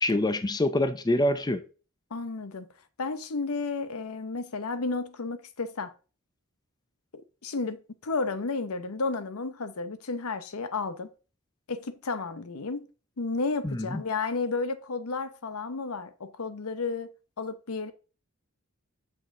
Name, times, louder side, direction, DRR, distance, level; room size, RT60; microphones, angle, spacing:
voice 1, 0.0-1.6 13.6-14.0, left 1 dB, 20° left, 0.6 m, -26 dB
voice 2, 2.1-2.7 3.0-5.9 7.1-11.1 11.7-12.9 13.2-17.1 17.4-17.9, left 4 dB, 80° left, 0.8 m, -32 dB
7.6 x 6.1 x 3.7 m
head